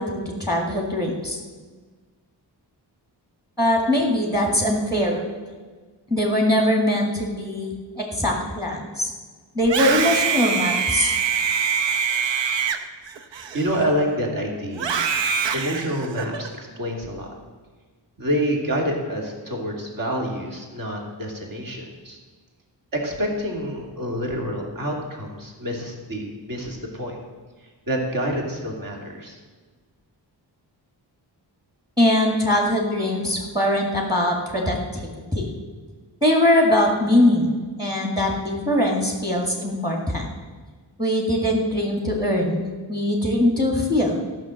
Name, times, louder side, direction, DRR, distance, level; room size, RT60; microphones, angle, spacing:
voice 1, 0.0-1.4 3.6-5.2 6.1-9.1 9.6-11.1 32.0-35.0 35.3-35.5 36.2-40.3 41.0-44.2, left 1 dB, 10° right, 0 dB, 2.0 m, -21 dB
Screaming, 9.6-14.1 14.7-16.5, right 6 dB, 85° right, 1.0 m, -24 dB
voice 2, 13.5-15.0 15.5-17.3 18.2-22.2 22.9-27.2 27.9-29.4, equal, 50° right, 0 dB, 2.7 m, -27 dB
13.5 x 6.0 x 7.6 m, 1.4 s
wide cardioid pair, 120°, 43 cm